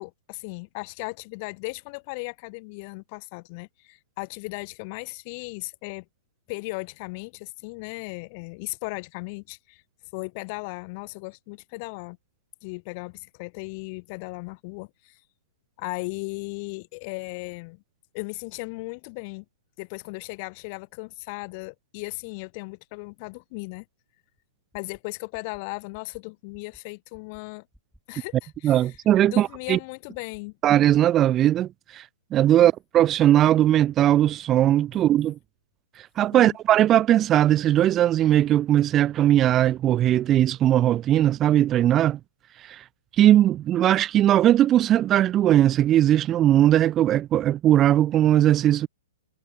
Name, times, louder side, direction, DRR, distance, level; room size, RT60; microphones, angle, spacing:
voice 1, 0.0-6.0 6.5-9.8 10.1-12.2 12.6-15.2 15.8-17.8 18.1-19.4 19.8-23.8 24.7-27.7 28.1-28.9 29.3-30.5 32.6-32.7 34.9-35.0 36.3-36.6, left 30 dB, 35° left, 1.0 m, -36 dB
sound 1, 24.4-24.5 24.7-25.0 25.3-25.6 25.9-26.2 26.5-26.8 27.1-27.4 27.7-28.0 28.3-28.6 28.9-29.2 29.5-29.8 30.1-30.4 30.7-31.0, equal, ahead, 2.4 m, -56 dB
voice 2, 28.6-29.8 30.6-32.1 32.3-35.4 36.0-42.2 42.6-42.8 43.1-48.9, right 12 dB, 20° right, 0.3 m, -19 dB
figure-of-eight pair, 115°, 0 cm